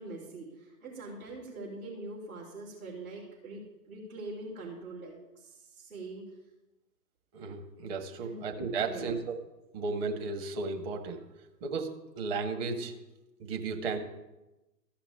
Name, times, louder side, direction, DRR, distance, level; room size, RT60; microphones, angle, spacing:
voice 1, 0.0-6.4 8.2-8.4 8.8-9.2, right 2 dB, 60° right, -7 dB, 4.3 m, -43 dB
voice 2, 7.3-9.3 9.7-11.2 11.6-12.9 13.4-14.0, right 4 dB, 35° right, 4 dB, 1.9 m, -34 dB
14.5 x 5.9 x 8.9 m, 1.0 s
figure-of-eight pair, 125°, 50 cm